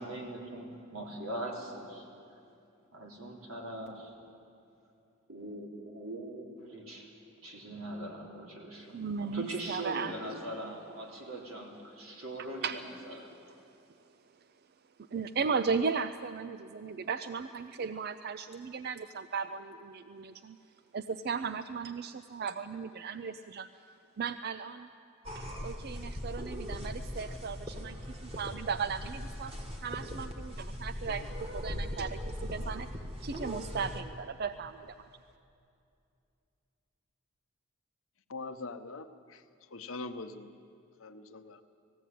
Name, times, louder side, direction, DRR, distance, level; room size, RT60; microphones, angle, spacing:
voice 1, 0.0-2.0 2.9-4.1 5.3-7.1 7.4-13.6, right 1 dB, 85° right, -1 dB, 3.6 m, -41 dB
voice 2, 8.9-10.1 12.6-12.8 15.1-20.6 20.9-23.7 24.2-24.9 25.3-28.0 28.4-29.5 29.8-32.9 33.2-34.9, right 5 dB, 50° right, 11 dB, 0.4 m, -36 dB
sound 1, 25.2-34.0, equal, 25° right, 1.7 m, -40 dB
voice 3, 38.3-39.4 39.7-40.5 41.0-41.6, left 3 dB, 70° left, 8 dB, 1.0 m, -42 dB
19.5 x 15.5 x 9.2 m, 2.6 s
head